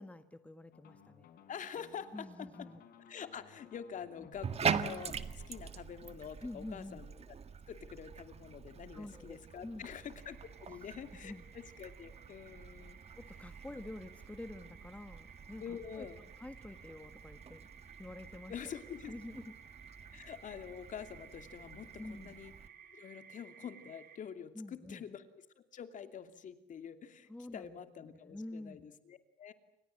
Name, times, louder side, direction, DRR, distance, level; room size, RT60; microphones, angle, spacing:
voice 1, 0.0-1.3 2.1-2.8 4.2-4.3 6.4-7.0 8.9-9.8 10.7-10.8 11.2-11.4 13.2-16.1 16.4-17.7 18.0-18.5 19.1-19.5 22.0-22.4 24.5-25.0 27.3-27.7 28.0-28.8, left 1 dB, 10° left, 10 dB, 1.5 m, -47 dB
sound 1, 0.7-5.7, left 8 dB, 65° left, 4.6 m, -60 dB
voice 2, 1.5-2.7 3.1-7.4 7.7-13.0 15.6-16.2 18.5-19.1 20.1-22.5 22.9-29.5, left 8 dB, 50° left, 9 dB, 2.7 m, -47 dB
Bathtub (filling or washing), 4.3-22.7, right 6 dB, 35° right, 1.8 m, -44 dB
sound 2, 10.1-24.2, right 7 dB, 65° right, 3.7 m, -57 dB
29.0 x 25.5 x 7.7 m, 0.83 s
cardioid pair, 110°, 17 cm